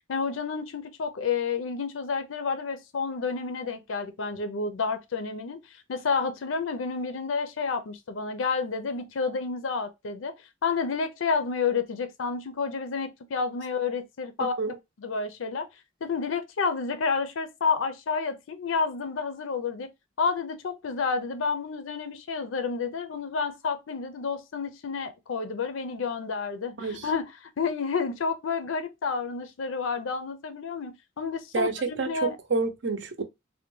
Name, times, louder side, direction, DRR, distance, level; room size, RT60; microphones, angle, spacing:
voice 1, 0.1-10.3 10.6-14.6 15.0-15.7 16.0-19.9 20.2-32.4, left 5 dB, 85° left, 0.5 m, -30 dB
voice 2, 32.0-33.2, right 4 dB, 65° right, 0.6 m, -28 dB
3.4 x 2.2 x 2.9 m
head